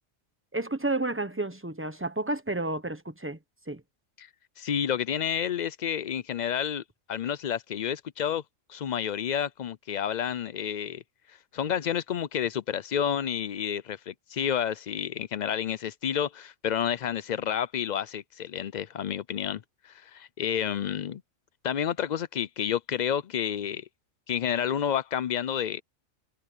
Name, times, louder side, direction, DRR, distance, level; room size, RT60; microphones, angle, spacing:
voice 1, 0.5-3.4 3.7-3.8, right 2 dB, 10° right, 0.8 m, -31 dB
voice 2, 4.6-6.8 7.1-8.4 8.7-11.0 11.5-21.2 21.6-23.9 24.3-25.8, left 9 dB, 70° left, 0.4 m, -30 dB
omnidirectional pair, 1.4 m